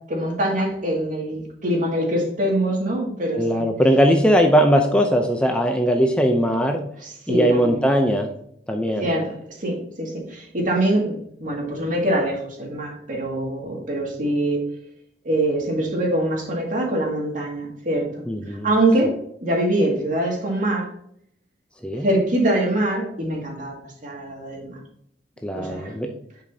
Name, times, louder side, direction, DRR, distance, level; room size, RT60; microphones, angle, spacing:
voice 1, 0.1-3.7 7.0-7.8 9.0-9.3 9.6-14.7 15.2-19.1 19.4-20.9 22.0-24.8 25.5-25.9, right 1 dB, 50° right, -1 dB, 2.3 m, -24 dB
voice 2, 3.3-6.8 7.3-8.3 8.7-9.1 18.3-18.7 21.8-22.1 25.4-26.1, equal, 5° left, 3 dB, 0.6 m, -19 dB
10.5 x 5.2 x 2.8 m, 0.69 s
head